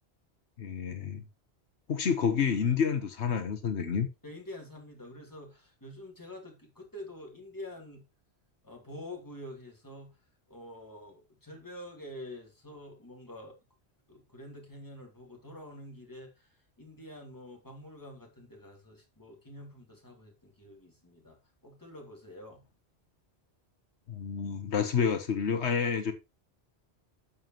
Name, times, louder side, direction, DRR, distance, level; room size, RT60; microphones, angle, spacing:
voice 1, 0.6-1.2 1.9-4.1 24.1-26.1, left 6 dB, 85° left, 1.4 m, -29 dB
voice 2, 4.2-8.0 8.6-10.2 10.5-13.6 14.1-21.4 21.6-22.6, left 1 dB, 15° left, 2.8 m, -47 dB
9.2 x 7.4 x 2.9 m
omnidirectional pair, 1.1 m